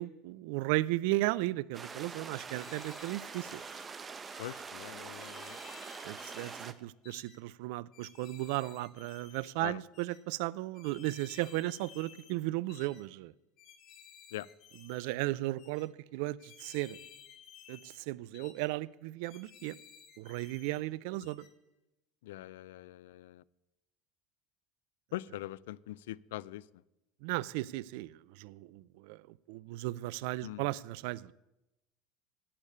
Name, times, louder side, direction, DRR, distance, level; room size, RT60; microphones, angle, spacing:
voice 1, 0.0-3.6 6.0-13.3 14.9-17.0 17.7-19.8 20.2-21.4 27.2-29.2 29.5-31.3, right 18 dB, 70° right, 21 dB, 0.4 m, -35 dB
sound 1, 1.7-6.7, right 5 dB, 30° right, 0.8 m, -44 dB
sound 2, 2.3-3.9 4.3-4.6 5.1-6.7 7.0-7.4 7.9-9.5 9.9-10.2 10.7-12.4 12.7-13.0 13.6-15.2 15.6-15.9 16.4-18.0 18.3-18.7 19.2-20.8 21.2-21.5, left 8 dB, 55° left, 1.6 m, -56 dB
voice 2, 4.4-5.6 9.6-9.8 14.3-14.5 22.2-23.4 25.1-26.6 30.4-30.7, left 15 dB, 75° left, 21 dB, 0.3 m, -42 dB
8.6 x 8.2 x 8.4 m, 0.92 s
hypercardioid pair, 80°, 0 cm